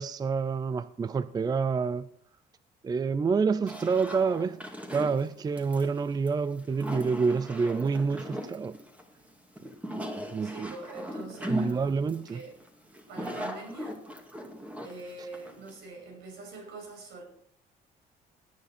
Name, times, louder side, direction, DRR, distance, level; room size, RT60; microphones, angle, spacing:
voice 1, 0.0-2.1 2.8-4.6 4.9-8.8 10.3-10.7 11.5-12.4, right 5 dB, 25° right, 0.5 m, -28 dB
Washing Up Glass Monster, 3.7-15.8, equal, 10° right, 2.3 m, -38 dB
voice 2, 10.4-11.8 12.3-12.5 13.1-14.0 14.8-17.2, right 3 dB, 80° right, 6.8 m, -44 dB
18.0 x 9.3 x 4.3 m
cardioid pair, 110°, 17 cm